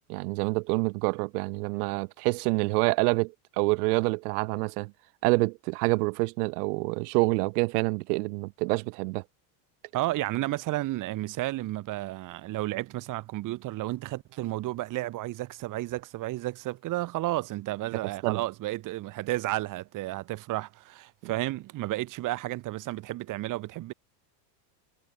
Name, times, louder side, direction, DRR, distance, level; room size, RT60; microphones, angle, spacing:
voice 1, 0.1-4.9 5.2-9.2 18.2-18.4 21.2-21.3, right 27 dB, 70° right, 1.5 m, -27 dB
voice 2, 9.9-23.9, right 17 dB, 40° right, 2.9 m, -32 dB
cardioid pair, 160°, 47 cm